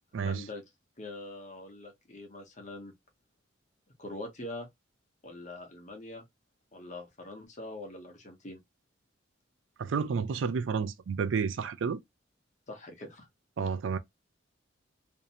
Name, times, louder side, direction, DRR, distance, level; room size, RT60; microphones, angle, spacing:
voice 1, 0.1-0.6 1.0-2.9 4.0-4.7 5.2-6.2 6.7-8.6 12.7-13.3, left 2 dB, 40° left, 0.8 m, -43 dB
voice 2, 9.8-12.0 13.6-14.0, right 5 dB, 75° right, 0.4 m, -30 dB
2.6 x 2.1 x 2.7 m
head